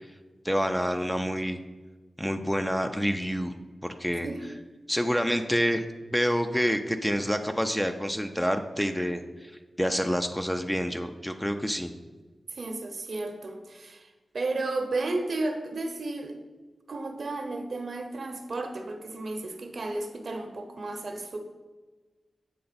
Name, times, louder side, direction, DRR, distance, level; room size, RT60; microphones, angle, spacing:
voice 1, 0.4-1.6 2.2-3.5 3.8-4.3 4.9-5.8 6.1-9.5 9.8-11.9, equal, 5° left, 7 dB, 0.4 m, -27 dB
voice 2, 12.5-16.3 16.9-21.4, right 2 dB, 60° right, 5 dB, 0.7 m, -33 dB
7.7 x 3.4 x 3.9 m, 1.3 s
cardioid pair, 65°, 0 cm